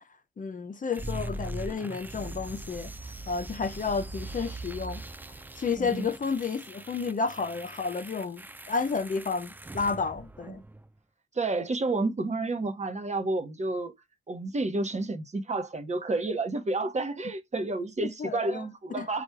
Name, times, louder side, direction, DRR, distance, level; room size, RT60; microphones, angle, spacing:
voice 1, 0.4-2.9 3.3-5.0 5.6-10.6 18.2-18.6 18.9-19.1, left 5 dB, 40° left, 0.6 m, -31 dB
sound 1, 0.9-10.9, right 2 dB, 10° right, 0.4 m, -41 dB
voice 2, 5.8-6.1 10.5-10.6 11.3-13.9 14.3-19.2, right 2 dB, 35° right, 0.9 m, -30 dB
4.3 x 2.3 x 4.6 m
cardioid pair, 80°, 21 cm